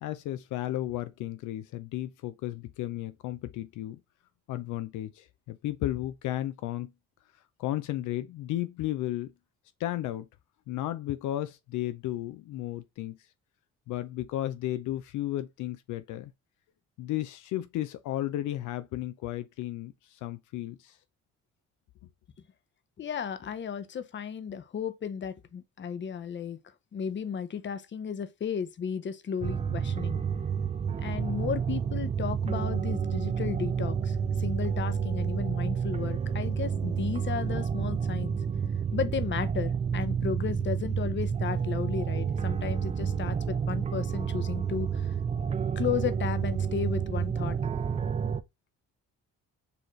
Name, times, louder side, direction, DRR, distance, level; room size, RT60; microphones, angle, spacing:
voice 1, 0.0-4.0 4.5-6.9 7.6-9.3 9.8-10.3 10.7-13.2 13.9-16.3 17.0-21.0, left 14 dB, 80° left, 0.4 m, -34 dB
voice 2, 23.0-26.6 26.9-30.2 31.0-38.4 38.9-45.2 45.8-47.6, left 7 dB, 40° left, 0.7 m, -34 dB
sound 1, 29.4-48.4, right 7 dB, 25° right, 0.3 m, -30 dB
6.8 x 2.4 x 3.1 m
cardioid pair, 90°, 30 cm